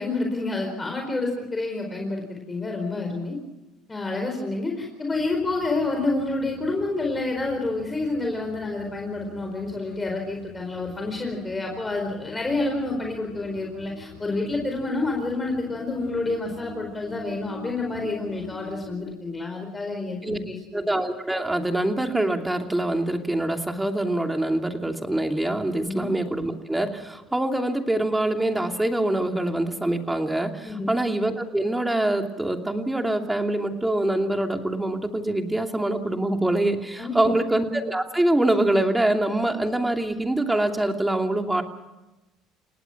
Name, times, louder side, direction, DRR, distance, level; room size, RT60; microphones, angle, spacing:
voice 1, 0.0-3.4 3.9-20.6 25.7-26.0 30.6-30.9 37.0-37.4, left 2 dB, 20° left, 2 dB, 4.6 m, -28 dB
sound 1, 5.2-18.9, left 6 dB, 75° left, 2.9 m, -45 dB
voice 2, 20.7-41.6, right 1 dB, 10° right, 4 dB, 2.8 m, -24 dB
29.5 x 18.5 x 6.1 m, 1.1 s
supercardioid pair, 90°, 0 cm